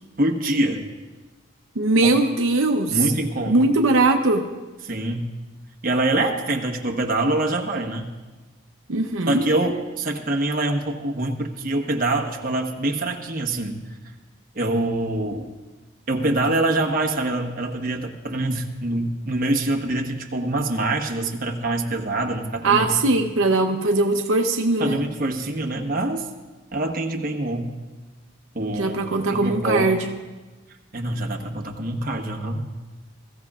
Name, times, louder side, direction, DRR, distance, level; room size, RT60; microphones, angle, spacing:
voice 1, 0.2-0.8 2.0-2.1 2.9-3.6 4.8-5.3 5.8-8.1 9.3-13.8 14.5-15.5 16.1-22.9 24.8-26.3 26.7-27.7 28.5-29.0 29.3-29.9 30.9-32.6, right 2 dB, 40° right, 1 dB, 1.2 m, -25 dB
voice 2, 1.8-3.0 3.5-4.4 8.9-9.4 22.6-25.0 28.7-30.1, right 2 dB, 75° right, 4 dB, 0.8 m, -20 dB
21.5 x 14.5 x 2.4 m, 1.2 s
head